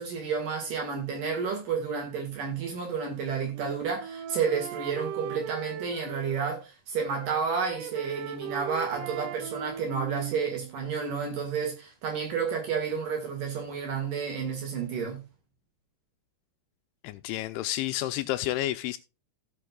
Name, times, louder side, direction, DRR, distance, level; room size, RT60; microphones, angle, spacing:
voice 1, 0.0-15.2, right 6 dB, 55° right, 2.9 m, -31 dB
Wind instrument woodwind instrument, 3.1-6.6 7.0-11.0, right 10 dB, 85° right, 3.5 m, -39 dB
voice 2, 17.0-19.0, left 14 dB, 85° left, 2.8 m, -30 dB
17.0 x 6.6 x 2.3 m
omnidirectional pair, 5.6 m